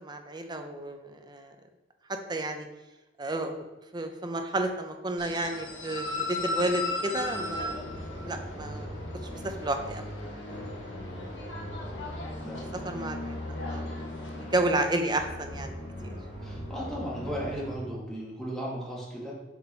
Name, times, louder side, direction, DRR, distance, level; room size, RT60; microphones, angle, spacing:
voice 1, 0.0-1.5 2.1-2.7 3.2-3.7 3.9-7.9 8.2-8.9 9.4-10.0 12.8-13.4 13.7-13.9 14.4-16.1, right 2 dB, 25° right, 5 dB, 0.6 m, -31 dB
sound 1, 5.2-14.8, left 3 dB, 75° left, 1.4 m, -38 dB
sound 2, 7.1-17.7, left 1 dB, 55° left, 2.0 m, -40 dB
voice 2, 10.5-10.8 12.4-12.9 14.3-14.6 16.4-19.3, equal, 5° left, -6 dB, 1.9 m, -37 dB
7.1 x 4.3 x 4.3 m, 1.1 s
head